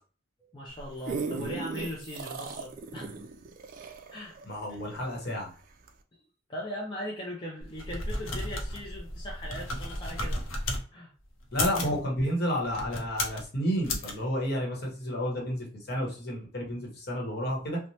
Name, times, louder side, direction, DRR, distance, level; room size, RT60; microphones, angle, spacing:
voice 1, 0.4-3.1 4.1-4.4 4.7-4.8 6.5-10.4 10.9-11.1, equal, 25° left, -3 dB, 0.4 m, -39 dB
sound 1, 0.7-5.4 5.9-6.0, right 4 dB, 40° right, 0.3 m, -37 dB
voice 2, 4.4-5.5 11.5-17.8, equal, 50° left, -1 dB, 1.0 m, -31 dB
sound 2, 7.6-10.8 11.4-12.0 12.7-13.4 13.8-14.1, left 1 dB, 80° left, 0.7 m, -33 dB
3.0 x 2.1 x 2.7 m, 0.42 s
head